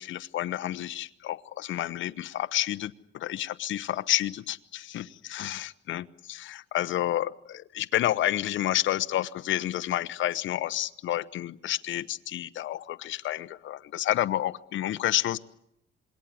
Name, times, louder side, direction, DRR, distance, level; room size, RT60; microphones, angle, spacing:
voice 1, 0.0-15.4, left 13 dB, 75° left, 13 dB, 1.0 m, -30 dB
27.0 x 21.5 x 9.4 m, 0.77 s
cardioid pair, 90°, 20 cm